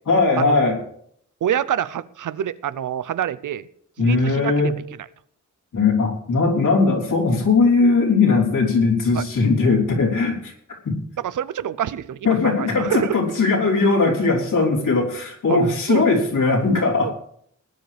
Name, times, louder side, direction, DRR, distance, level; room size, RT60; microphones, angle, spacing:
voice 1, 0.1-0.8 4.0-4.7 5.7-10.5 10.8-11.0 12.2-17.1, left 3 dB, 85° left, -2 dB, 3.3 m, -19 dB
voice 2, 1.4-3.7 4.0-4.7 9.1-9.2 11.2-13.2 15.5-15.6 15.9-16.1 17.0-17.1, right 10 dB, 85° right, 17 dB, 0.6 m, -26 dB
19.5 x 10.5 x 3.4 m, 0.68 s
wide cardioid pair, 155°, 30 cm